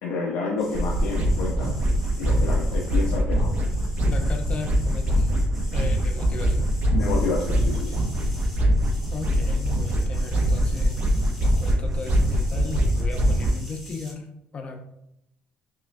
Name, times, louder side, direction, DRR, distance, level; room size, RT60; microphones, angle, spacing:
voice 1, 0.0-1.7 2.2-3.5 6.9-7.9, left 4 dB, 80° left, -3 dB, 0.7 m, -29 dB
sound 1, 0.6-14.1, left 1 dB, 5° right, 0.8 m, -45 dB
sound 2, 0.7-13.5, equal, 40° right, 0.5 m, -23 dB
voice 2, 4.0-5.4 5.7-6.7 9.1-11.0 11.4-14.3 14.5-14.8, left 4 dB, 25° left, 4 dB, 0.4 m, -36 dB
5.6 x 2.1 x 2.5 m, 0.82 s
cardioid pair, 170°, 4 cm